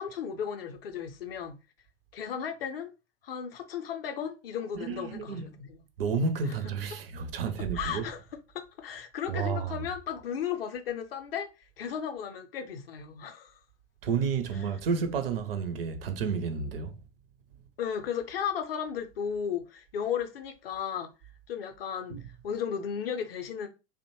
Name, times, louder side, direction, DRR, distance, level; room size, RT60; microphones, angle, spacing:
voice 1, 0.0-1.5 2.1-2.9 3.2-5.8 6.5-7.0 7.6-11.5 11.8-13.5 14.5-14.7 17.8-21.1 21.5-22.2 22.4-23.7, left 8 dB, 50° left, 0.5 m, -35 dB
voice 2, 4.8-5.5 6.0-8.0 9.3-9.8 14.0-17.0 22.1-22.2, right 5 dB, 50° right, 0.5 m, -31 dB
2.5 x 2.1 x 3.0 m
figure-of-eight pair, 100°, 37 cm